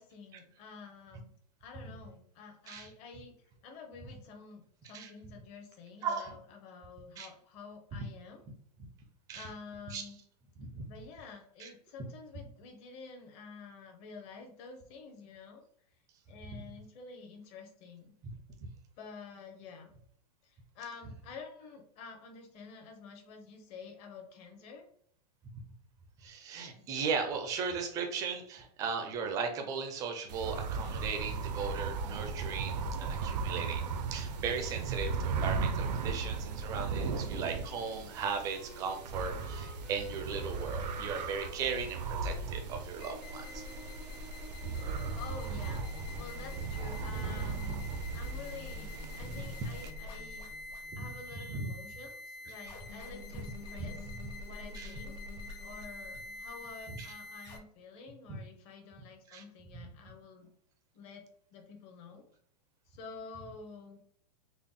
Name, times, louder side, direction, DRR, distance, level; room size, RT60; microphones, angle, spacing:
voice 1, 0.0-1.3 1.6-3.3 3.6-8.4 9.3-10.2 10.9-15.6 16.3-18.1 19.0-19.9 20.4-24.9 26.7-26.9 45.2-45.8 46.2-50.5 51.0-54.0 54.4-60.5 60.9-61.2 61.5-62.3 62.9-64.0, left 4 dB, 30° left, 3 dB, 0.7 m, -49 dB
voice 2, 6.0-6.4 7.2-7.3 9.3-9.5 9.9-10.0 10.6-10.9 11.6-11.7 16.5-16.6 18.2-18.3 26.2-43.6 49.3-49.8 50.9-51.1 51.3-51.7 53.8-53.9 54.7-54.9 56.9-57.1 58.3-58.4 59.3-59.4 60.1-60.2, right 5 dB, 15° right, 5 dB, 0.4 m, -37 dB
sound 1, 30.3-49.9, right 4 dB, 85° right, 0.5 m, -37 dB
Wind instrument woodwind instrument, 37.1-44.2, left 1 dB, 55° left, 1.3 m, -55 dB
sound 2, 37.9-57.6, left 2 dB, 90° left, 1.1 m, -46 dB
3.7 x 2.1 x 3.5 m, 0.65 s
supercardioid pair, 160°, 21 cm